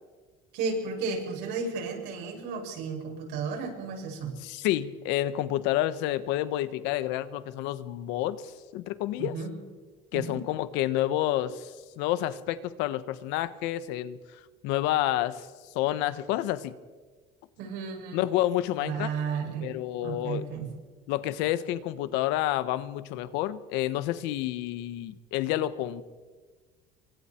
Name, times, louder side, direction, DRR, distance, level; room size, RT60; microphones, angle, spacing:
voice 1, 0.5-4.3 9.2-9.6 10.1-10.4 17.6-18.2 18.8-19.7 20.0-20.7, right 5 dB, 65° right, 1 dB, 7.3 m, -33 dB
voice 2, 4.4-9.4 10.1-14.2 14.6-15.5 15.7-16.7 18.1-19.1 19.6-20.4 21.1-26.0, left 14 dB, 75° left, 13 dB, 1.4 m, -29 dB
27.5 x 24.5 x 4.6 m, 1.4 s
cardioid pair, 150°, 18 cm